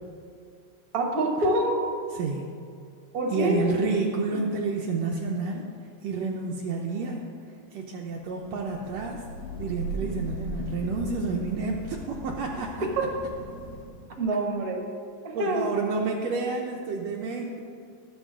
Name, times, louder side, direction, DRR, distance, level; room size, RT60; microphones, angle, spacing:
voice 1, 0.9-1.8 3.1-3.6 13.0-13.1 14.2-14.8 15.4-15.7, right 2 dB, 40° right, 0 dB, 1.5 m, -25 dB
voice 2, 2.1-2.5 3.3-5.6 6.0-7.2 7.7-9.2 9.6-12.9 15.3-17.6, right 4 dB, 70° right, 0 dB, 1.8 m, -29 dB
Thunder / Rain, 8.4-14.2, right 1 dB, 65° left, 1.9 m, -38 dB
19.0 x 7.2 x 3.7 m, 2.3 s
omnidirectional pair, 3.4 m